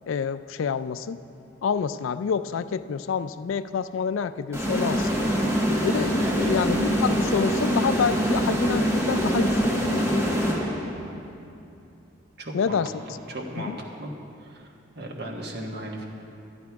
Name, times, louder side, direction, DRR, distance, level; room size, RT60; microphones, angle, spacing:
voice 1, 0.1-1.2 1.6-5.1 5.8-10.1 12.5-12.9 13.6-13.8, left 6 dB, 75° left, 13 dB, 0.3 m, -28 dB
sound 1, 4.5-11.1, equal, 15° right, 1.2 m, -24 dB
voice 2, 6.2-6.6 12.4-12.8 13.1-13.7 14.0-14.1 14.4-14.7 14.9-16.0, right 1 dB, 55° right, 0 dB, 1.4 m, -36 dB
12.0 x 11.5 x 4.7 m, 2.6 s
head